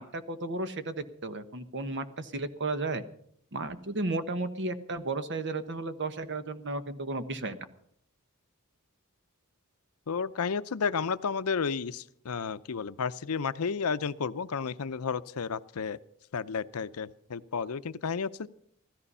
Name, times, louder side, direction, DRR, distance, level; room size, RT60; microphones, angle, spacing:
voice 1, 0.0-3.0 3.5-7.7, right 2 dB, 55° right, 11 dB, 1.1 m, -34 dB
voice 2, 10.1-16.0 16.3-18.5, left 5 dB, 80° left, 15 dB, 0.6 m, -32 dB
15.5 x 14.0 x 5.5 m, 0.67 s
head